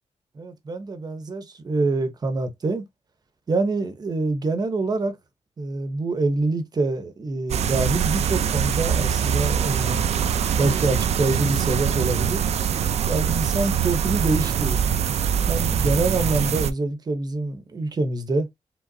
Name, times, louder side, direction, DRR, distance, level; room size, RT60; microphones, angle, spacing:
voice 1, 0.3-2.9 3.5-5.2 5.6-10.0 10.6-12.4 13.1-14.8 15.5-18.5, right 2 dB, 40° right, 0.9 m, -25 dB
sound 1, 7.5-16.7, right 8 dB, 75° right, 0.5 m, -23 dB
5.0 x 3.7 x 2.7 m
wide cardioid pair, 160°, 11 cm